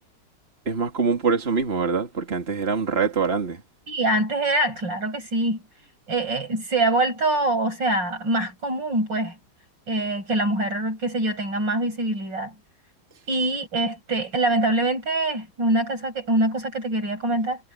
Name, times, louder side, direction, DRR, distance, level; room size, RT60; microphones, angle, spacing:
voice 1, 0.7-3.6, right 5 dB, 35° right, 2.7 m, -24 dB
voice 2, 3.9-5.6 6.1-9.4 9.9-12.5 13.3-17.6, right 2 dB, 85° right, 8.0 m, -24 dB
omnidirectional pair, 1.9 m